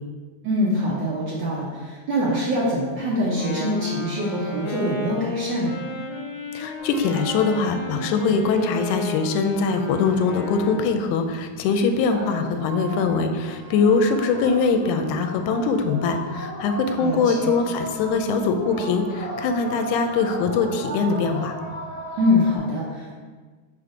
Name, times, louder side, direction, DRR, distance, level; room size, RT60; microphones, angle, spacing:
voice 1, 0.4-5.8 17.0-17.5 22.2-23.2, left 1 dB, 85° right, -6 dB, 1.0 m, -24 dB
Wind instrument woodwind instrument, 3.2-11.2, left 3 dB, 65° left, 1.4 m, -33 dB
voice 2, 6.5-21.6, left 4 dB, 90° left, 7 dB, 2.0 m, -22 dB
sound 1, 6.8-22.6, right 1 dB, 40° right, 0.8 m, -37 dB
5.1 x 4.3 x 4.9 m, 1.4 s
omnidirectional pair, 3.4 m